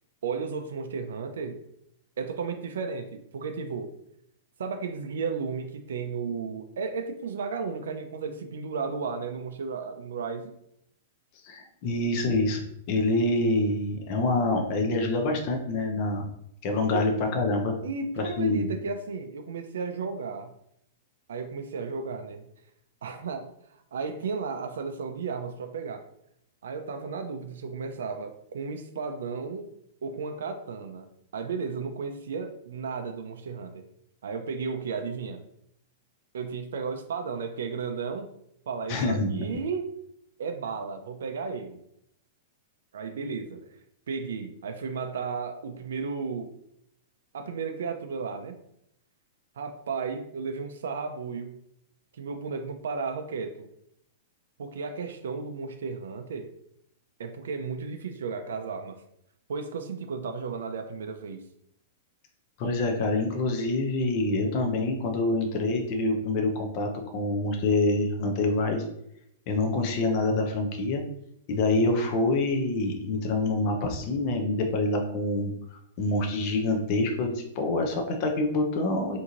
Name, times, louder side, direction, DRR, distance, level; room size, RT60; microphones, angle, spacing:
voice 1, 0.2-1.6 2.2-3.9 4.6-10.5 16.9-17.0 17.8-20.5 21.3-22.5 23.0-23.5 23.7-26.0 26.6-29.7 30.0-31.1 31.3-33.8 34.2-35.4 36.3-38.3 38.7-39.9 40.4-41.8 42.9-43.6 44.1-46.5 47.3-48.5 49.6-51.6 52.1-53.7 54.6-56.5 57.2-59.0 59.5-61.4, right 5 dB, 85° right, 6 dB, 0.4 m, -34 dB
voice 2, 11.4-12.6 12.9-16.3 16.6-17.7 18.2-18.7 38.9-39.4 62.6-68.8 69.5-71.0 71.5-75.5 76.0-79.2, left 2 dB, 30° left, 2 dB, 0.4 m, -26 dB
2.9 x 2.6 x 3.7 m, 0.75 s
supercardioid pair, 180°, 0 cm